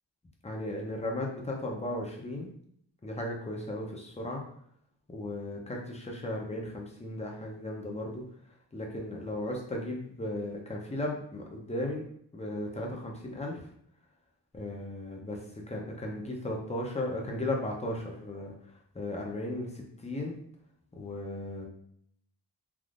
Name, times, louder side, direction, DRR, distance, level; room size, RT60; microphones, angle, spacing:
voice 1, 0.4-2.5 3.0-4.4 5.1-8.2 8.7-12.0 12.3-13.6 14.5-15.4 15.7-18.5 18.9-20.4 21.0-21.7, left 1 dB, 15° left, 0 dB, 0.6 m, -36 dB
3.5 x 2.5 x 2.4 m, 0.66 s
wide cardioid pair, 75°, 46 cm